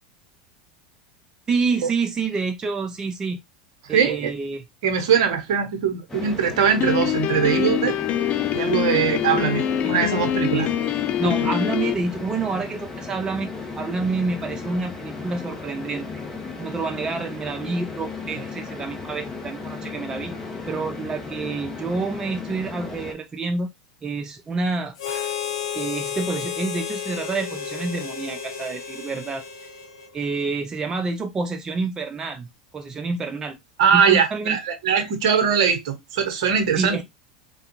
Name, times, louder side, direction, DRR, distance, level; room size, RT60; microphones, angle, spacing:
voice 1, 1.5-3.4 3.9-4.6 9.8-9.9 10.5-10.7 11.2-13.5 13.7-16.2 16.6-20.3 20.7-23.7 24.0-25.3 25.7-29.7 30.1-32.5 32.7-33.6 33.9-34.6 36.8-37.0, right 4 dB, 20° right, 0.4 m, -28 dB
voice 2, 3.9-4.3 4.8-8.0 8.5-10.7 11.2-11.3 33.8-37.0, right 7 dB, 65° right, 0.9 m, -21 dB
sound 1, 6.1-23.1, left 4 dB, 15° left, 1.0 m, -35 dB
Piano, 6.8-11.9, left 10 dB, 45° left, 0.3 m, -24 dB
Harmonica, 25.0-30.5, left 7 dB, 70° left, 0.7 m, -32 dB
3.4 x 2.3 x 3.0 m
hypercardioid pair, 90°, 3 cm